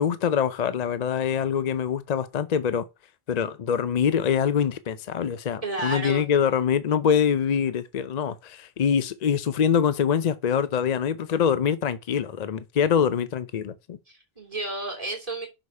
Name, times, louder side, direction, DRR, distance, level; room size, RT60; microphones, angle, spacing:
voice 1, 0.0-2.8 3.3-14.0, left 7 dB, 50° left, 0.6 m, -24 dB
voice 2, 5.6-6.3 14.1-15.5, right 2 dB, 35° right, 3.1 m, -32 dB
6.3 x 4.8 x 5.4 m
omnidirectional pair, 1.0 m